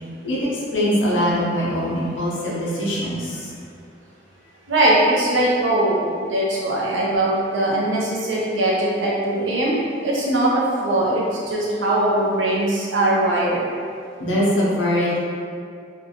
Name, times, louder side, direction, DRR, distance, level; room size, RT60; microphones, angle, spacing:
voice 1, 0.2-3.5 14.2-15.2, equal, 80° left, -5 dB, 0.6 m, -22 dB
voice 2, 4.7-9.7 10.0-10.5 10.8-13.6, right 1 dB, 80° right, -5 dB, 0.6 m, -20 dB
2.6 x 2.2 x 2.8 m, 2.3 s
head